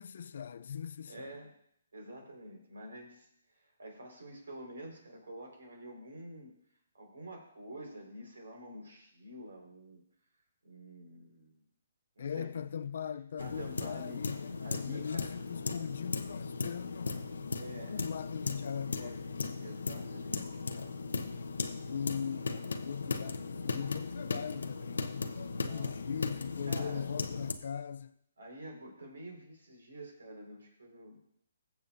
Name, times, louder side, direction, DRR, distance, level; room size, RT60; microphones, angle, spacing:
voice 1, 0.0-1.3 12.2-17.2 17.9-19.4 21.8-25.3 25.7-28.1, left 7 dB, 65° left, 0.4 m, -40 dB
voice 2, 1.1-1.5 1.9-3.3 3.5-6.5 6.9-10.0 10.6-11.6 12.2-12.5 13.4-14.2 14.6-15.4 17.5-18.0 19.0-19.3 19.6-21.0 25.6-26.0 26.6-27.1 28.4-31.2, right 1 dB, 85° right, 4.3 m, -48 dB
sound 1, 13.4-27.5, left 4 dB, 85° left, 1.0 m, -37 dB
21.5 x 7.2 x 2.6 m
hypercardioid pair, 150°, 0 cm